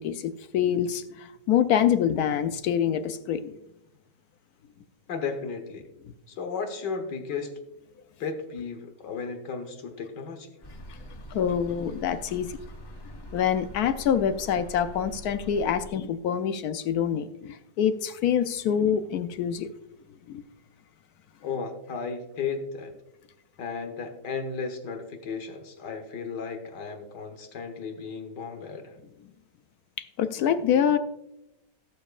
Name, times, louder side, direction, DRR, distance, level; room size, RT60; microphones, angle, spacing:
voice 1, 0.0-3.5 10.9-11.0 11.3-12.6 13.3-19.7 20.3-20.4 30.0-31.0, left 8 dB, 70° left, 11 dB, 1.0 m, -26 dB
voice 2, 5.1-5.8 6.3-7.5 8.2-10.5 21.4-22.9 23.6-28.9, left 5 dB, 85° left, 5 dB, 1.8 m, -34 dB
sound 1, 10.6-15.9, equal, 20° left, 0.8 m, -44 dB
17.0 x 7.0 x 2.4 m, 0.88 s
omnidirectional pair, 1.8 m